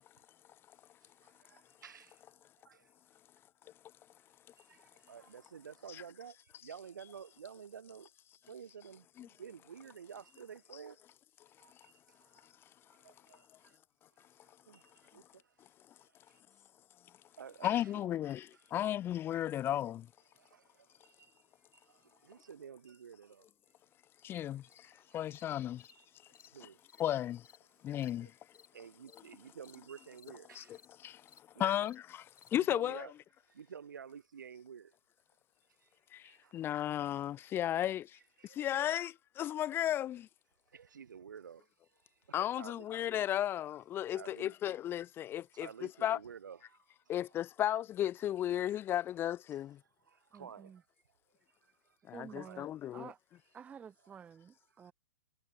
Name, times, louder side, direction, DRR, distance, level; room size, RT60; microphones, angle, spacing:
voice 1, 1.2-2.2 2.6-2.9 4.6-8.1 8.5-11.0 11.6-12.5 12.9-13.4 14.7-15.5 17.4-18.2 20.4-21.4 21.7-23.5 24.8-25.2 25.9-26.1 26.5-26.8 28.2-28.3 28.7-30.8 31.6-31.9 32.6-33.1 33.5-34.9 35.8-35.9 36.2-36.6 38.4-39.0 40.7-41.7 42.3-42.9 44.2-44.5 45.5-46.9 47.2-47.3 50.1-50.8 51.6-52.7 54.0-54.2, right 7 dB, 75° right, 1.7 m, -51 dB
voice 2, 17.6-20.1 24.2-25.9 26.6-26.7 27.0-27.5 27.8-28.3 30.5-31.2 31.6-33.1 36.1-40.3 42.3-46.2 47.1-49.8 52.1-53.1, left 11 dB, 20° left, 0.7 m, -35 dB
Cricket, 24.7-24.8 25.3-25.4 25.8-25.9 26.3-26.5 26.8-27.0 27.4-27.6 28.0-28.1 28.5-28.7 29.0-29.2 29.6-29.8 30.1-30.3 30.7-30.9 31.2-31.4 31.8-32.0 32.3-32.5, left 6 dB, 75° left, 6.5 m, -61 dB
voice 3, 50.3-50.8 52.1-53.2 53.5-54.9, right 7 dB, 10° right, 0.4 m, -51 dB
hypercardioid pair, 120°, 10 cm